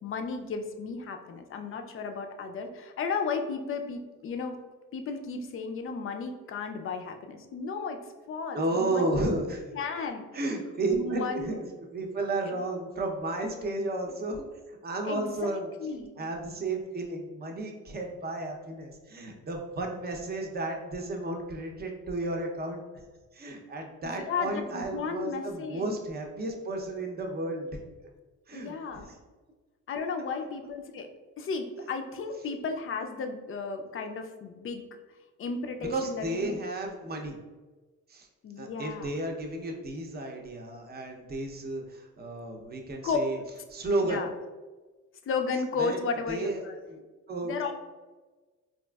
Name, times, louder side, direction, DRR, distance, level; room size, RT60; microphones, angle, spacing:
voice 1, 0.0-4.6 4.9-8.0 8.3-9.2 9.7-10.2 10.9-11.6 15.0-15.2 15.8-16.3 24.0-25.9 28.5-29.1 29.9-31.1 31.4-34.8 35.4-36.5 38.4-39.1 43.0-43.2 44.0-44.3 45.3-46.7 47.4-47.7, left 5 dB, 45° left, 6 dB, 0.4 m, -34 dB
voice 2, 8.5-9.6 10.0-10.1 10.3-15.7 16.2-23.0 23.3-27.8 28.5-29.2 35.9-37.4 38.1-38.3 38.6-43.4 43.7-44.3 45.8-47.0 47.3-47.7, right 2 dB, 30° right, 2 dB, 0.6 m, -33 dB
4.0 x 2.4 x 2.2 m, 1.3 s
cardioid pair, 90°, 30 cm